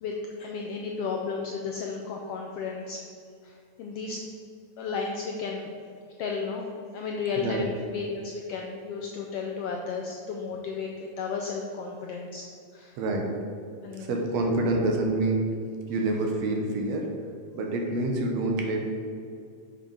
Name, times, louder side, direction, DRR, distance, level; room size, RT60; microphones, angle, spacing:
voice 1, 0.0-3.0 3.4-4.2 4.8-5.7 6.2-12.4 12.7-13.0 13.8-14.2, left 5 dB, 80° left, 0 dB, 1.3 m, -33 dB
voice 2, 7.4-7.7 13.0-13.3 13.9-15.5 15.9-17.1 17.5-18.8, right 2 dB, 70° right, 1 dB, 2.0 m, -27 dB
7.4 x 5.3 x 4.9 m, 2.3 s
omnidirectional pair, 3.3 m